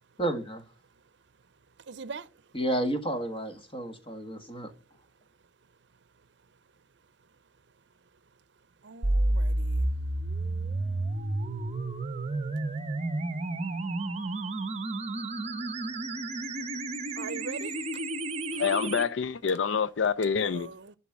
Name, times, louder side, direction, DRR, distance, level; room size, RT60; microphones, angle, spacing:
voice 1, 0.2-0.6 2.5-4.7, right 1 dB, 30° left, 1.6 m, -31 dB
voice 2, 1.8-2.5 8.8-9.9 14.4-14.5 15.0-16.6 17.1-18.0 20.4-21.0, right 4 dB, 65° right, 0.6 m, -44 dB
sound 1, 9.0-19.0, right 2 dB, 35° right, 0.8 m, -31 dB
voice 3, 18.6-20.7, left 6 dB, 75° left, 0.5 m, -27 dB
11.0 x 4.3 x 7.3 m
head